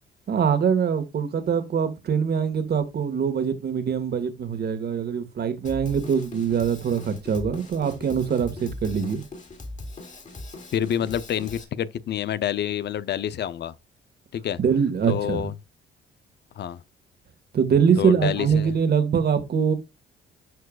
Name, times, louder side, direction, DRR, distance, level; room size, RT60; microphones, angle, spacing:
voice 1, 0.3-9.2 14.6-15.5 17.5-19.7, right 7 dB, 55° right, 1.8 m, -23 dB
Drum kit, 5.6-11.6, left 2 dB, 40° left, 3.4 m, -40 dB
voice 2, 10.7-13.7 14.3-14.6 15.1-15.5 16.6-16.8 18.0-18.7, left 10 dB, 60° left, 0.6 m, -27 dB
12.5 x 4.6 x 2.4 m
cardioid pair, 90°, 20 cm